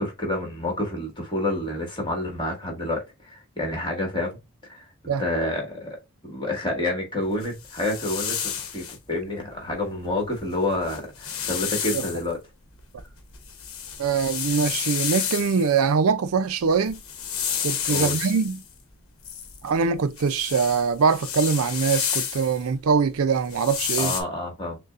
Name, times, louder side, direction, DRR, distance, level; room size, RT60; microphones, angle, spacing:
voice 1, 0.0-4.4 4.7-4.8 5.2-6.0 6.2-12.4 17.9-18.2 24.0-24.8, left 1 dB, 20° left, 1.8 m, -28 dB
sound 1, 7.4-9.0 10.3-10.4 10.8-12.2 12.8-15.8 16.7-18.6 19.2-22.6 23.4-24.2, left 8 dB, 70° left, 1.0 m, -30 dB
voice 2, 14.0-17.0 17.6-18.6 19.6-24.1, right 5 dB, 75° right, 0.4 m, -23 dB
6.5 x 2.2 x 2.4 m
head